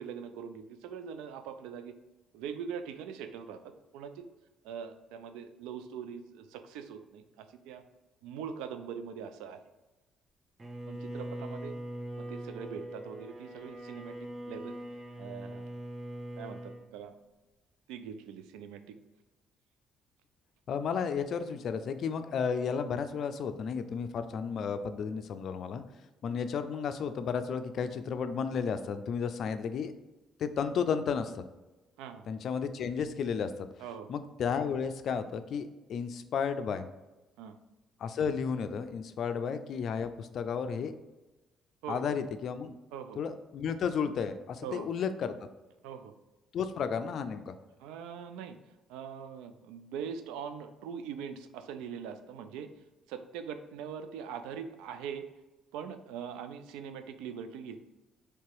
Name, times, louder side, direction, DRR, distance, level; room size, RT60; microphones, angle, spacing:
voice 1, 0.0-1.9 2.3-3.6 3.9-4.2 4.6-7.8 8.2-9.6 10.9-11.7 12.2-14.2 14.5-14.7 15.2-15.7 16.4-17.1 17.9-19.0 32.0-32.2 33.8-34.1 37.4-37.6 41.8-42.2 42.9-43.2 44.6-44.9 45.8-46.1 47.8-48.6 48.9-52.7 53.1-55.3 55.7-57.8, right 7 dB, 90° right, 9 dB, 0.3 m, -42 dB
Bowed string instrument, 10.6-16.9, right 1 dB, 25° right, 0.5 m, -42 dB
voice 2, 20.7-25.8 26.2-29.9 30.4-31.4 32.3-33.5 34.1-36.9 38.0-40.9 41.9-42.7 43.2-45.5 46.5-47.6, left 6 dB, 60° left, 10 dB, 0.4 m, -33 dB
3.3 x 2.9 x 4.6 m, 1.1 s
supercardioid pair, 80°, 0 cm